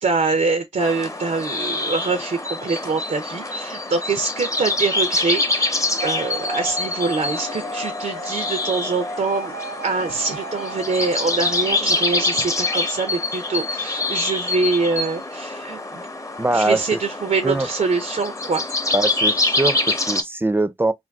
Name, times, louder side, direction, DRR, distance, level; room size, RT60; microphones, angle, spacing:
voice 1, 0.0-5.7 6.0-9.5 9.8-16.1 16.5-18.7, right 4 dB, 90° right, 0.5 m, -24 dB
sound 1, 0.8-20.2, left 2 dB, 25° left, 0.6 m, -25 dB
sound 2, 6.0-13.5, equal, 70° left, 0.7 m, -35 dB
voice 2, 16.4-17.0 17.4-17.7 18.9-20.9, right 2 dB, 15° right, 0.3 m, -22 dB
2.5 x 2.2 x 3.3 m
cardioid pair, 45°, 12 cm